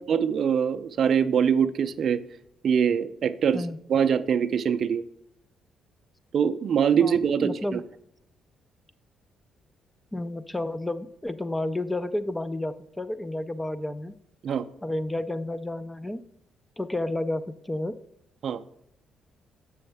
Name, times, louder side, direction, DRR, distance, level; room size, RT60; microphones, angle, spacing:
voice 1, 0.1-2.2 2.6-3.6 3.9-5.0 6.3-7.8 14.4-14.6 18.4-18.6, right 7 dB, 60° right, 10 dB, 0.4 m, -23 dB
voice 2, 7.0-7.8 10.1-14.1 14.8-16.2 16.8-18.0, left 1 dB, 10° left, 13 dB, 0.4 m, -31 dB
6.9 x 6.3 x 3.4 m, 0.77 s
cardioid pair, 90°, 0 cm